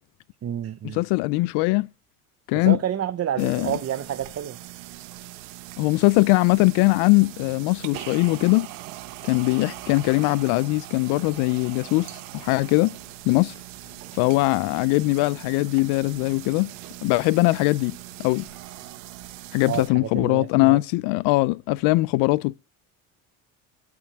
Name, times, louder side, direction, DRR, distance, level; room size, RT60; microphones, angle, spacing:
voice 1, 0.4-1.0 2.6-4.6 19.6-20.8, right 10 dB, 35° right, 0.9 m, -29 dB
voice 2, 0.9-1.9 2.5-2.8 3.4-3.7 5.8-8.7 9.2-13.0 13.3-13.5 14.1-16.7 17.0-18.5 19.5-22.5, left 23 dB, 65° left, 0.6 m, -21 dB
sound 1, 3.4-19.9, right 16 dB, 80° right, 1.4 m, -41 dB
13.0 x 6.0 x 7.8 m
hypercardioid pair, 75°, 43 cm